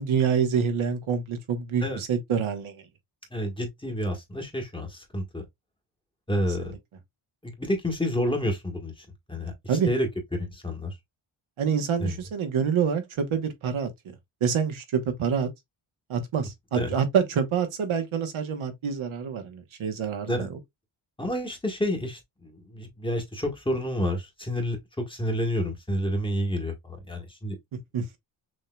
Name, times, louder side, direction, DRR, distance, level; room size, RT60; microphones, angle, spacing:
voice 1, 0.0-2.8 6.6-6.8 9.7-9.9 11.6-13.9 14.4-15.5 16.1-20.5 27.9-28.2, right 7 dB, 75° right, 1.2 m, -27 dB
voice 2, 3.3-5.4 6.3-6.7 7.4-8.9 9.3-9.5 9.9-10.1 10.4-10.9 12.0-12.1 16.7-16.9 20.3-20.5 21.2-27.5, equal, 10° left, 1.4 m, -29 dB
6.3 x 2.8 x 2.2 m
wide cardioid pair, 125°, 49 cm